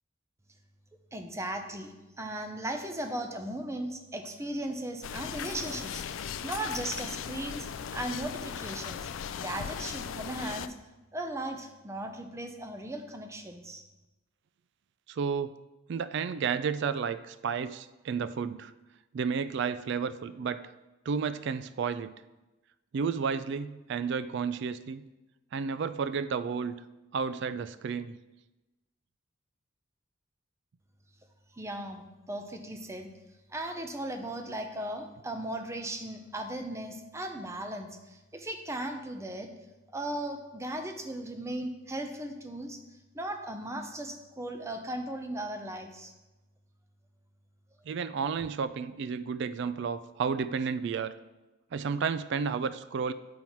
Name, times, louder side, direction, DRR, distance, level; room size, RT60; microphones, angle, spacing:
voice 1, 1.1-9.1 9.3-10.7 11.1-13.8 31.5-33.1 33.5-39.5 39.9-42.8 43.1-46.1, right 1 dB, 15° right, 5 dB, 0.6 m, -37 dB
sound 1, 5.0-10.7, left 8 dB, 70° left, 0.3 m, -38 dB
voice 2, 15.1-15.5 15.9-18.7 19.1-20.7 21.1-22.1 22.9-25.0 25.5-26.7 27.1-28.2 47.9-51.2 51.7-53.1, right 6 dB, 60° right, 14 dB, 0.3 m, -32 dB
7.5 x 5.6 x 4.5 m, 1.1 s
head